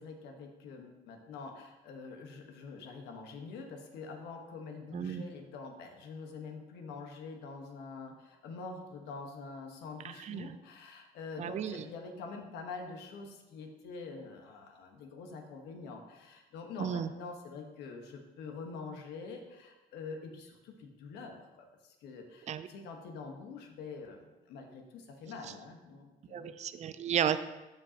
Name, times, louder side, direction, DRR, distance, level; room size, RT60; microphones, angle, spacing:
voice 1, 0.0-26.5, left 4 dB, 85° left, 3 dB, 1.3 m, -45 dB
voice 2, 4.9-5.3 10.2-10.5 11.4-11.8 16.8-17.1 22.5-22.7 26.3-27.4, right 9 dB, 40° right, 12 dB, 0.5 m, -33 dB
14.0 x 5.2 x 2.9 m, 1.1 s
cardioid pair, 110°, 17 cm